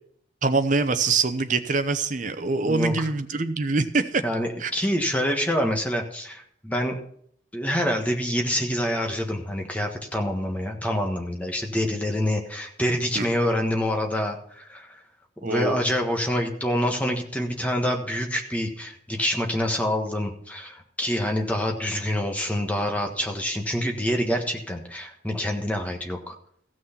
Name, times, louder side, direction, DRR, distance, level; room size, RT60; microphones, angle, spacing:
voice 1, 0.4-4.2 4.6-4.7 13.1-13.3 15.4-15.8, right 3 dB, 40° right, 10 dB, 0.8 m, -24 dB
voice 2, 2.6-3.1 4.2-7.0 7.5-15.0 15.4-26.4, equal, 10° left, 2 dB, 1.4 m, -26 dB
15.5 x 6.3 x 5.9 m, 0.64 s
head